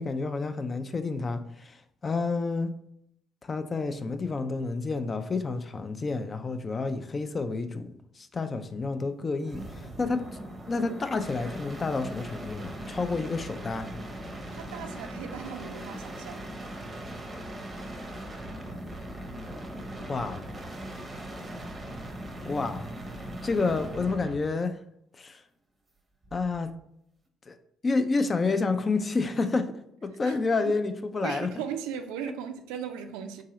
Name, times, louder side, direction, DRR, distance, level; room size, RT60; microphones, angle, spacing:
voice 1, 0.0-2.7 3.4-10.2 10.7-13.9 20.1-20.4 22.4-22.9 23.4-24.8 25.1-25.4 26.3-26.7 27.5-27.6 27.8-29.6 30.0-31.5, left 3 dB, 35° left, 0.4 m, -29 dB
sound 1, 9.4-24.5 26.2-26.7, right 1 dB, 25° right, 0.7 m, -39 dB
voice 2, 14.5-16.4 30.2-30.4 31.2-33.4, right 8 dB, 70° right, 0.3 m, -37 dB
3.7 x 2.8 x 2.9 m
figure-of-eight pair, 50°, 0 cm